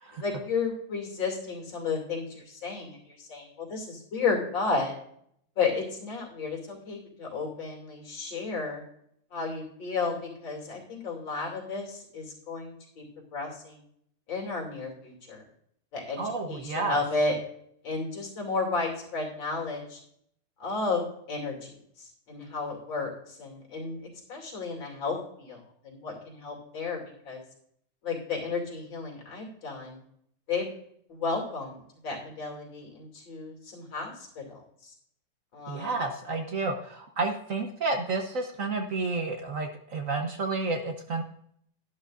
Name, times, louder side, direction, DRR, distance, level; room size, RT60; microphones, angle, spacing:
voice 1, 0.2-3.0 3.3-4.9 5.6-8.8 9.3-13.0 13.3-13.8 14.3-15.4 15.9-16.2 16.5-17.4 17.8-20.0 20.6-21.7 22.0-23.1 23.4-24.0 24.3-25.6 25.8-27.0 27.3-27.4 28.0-30.0 30.5-30.7 31.1-31.8 32.0-34.6 35.5-35.9, left 4 dB, 70° left, 0 dB, 3.5 m, -32 dB
voice 2, 16.2-17.0 35.7-41.2, right 3 dB, 50° right, 5 dB, 1.2 m, -30 dB
11.5 x 11.0 x 2.5 m, 0.67 s
omnidirectional pair, 2.1 m